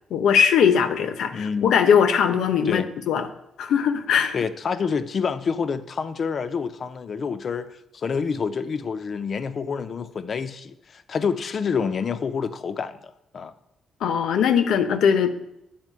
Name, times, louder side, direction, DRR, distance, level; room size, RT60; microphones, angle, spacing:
voice 1, 0.1-3.3 3.6-4.4 14.0-15.3, left 7 dB, 75° left, 9 dB, 0.8 m, -20 dB
voice 2, 1.3-1.7 2.7-2.9 4.3-13.5, left 6 dB, 50° left, 11 dB, 0.6 m, -28 dB
9.3 x 4.3 x 7.5 m, 0.82 s
cardioid pair, 90°, 0 cm